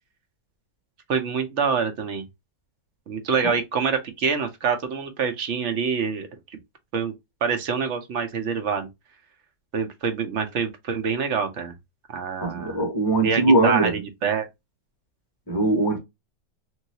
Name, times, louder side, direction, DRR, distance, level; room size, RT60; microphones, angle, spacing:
voice 1, 1.1-2.2 3.1-6.3 6.9-7.1 7.4-8.9 9.7-11.7 12.1-12.8 13.2-14.5, right 6 dB, 60° right, 0.9 m, -26 dB
voice 2, 12.4-14.0 15.5-16.0, right 2 dB, 25° left, 0.6 m, -21 dB
3.1 x 2.7 x 2.7 m
omnidirectional pair, 1.6 m